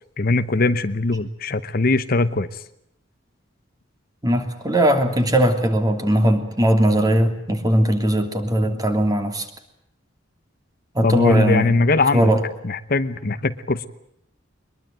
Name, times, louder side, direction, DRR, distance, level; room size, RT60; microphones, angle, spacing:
voice 1, 0.2-2.6 11.0-12.3 12.6-13.9, left 3 dB, 50° left, 12 dB, 0.9 m, -21 dB
voice 2, 4.2-9.5 10.9-11.7 12.1-12.4, right 1 dB, 20° right, 6 dB, 3.0 m, -19 dB
22.5 x 22.0 x 8.9 m, 0.75 s
head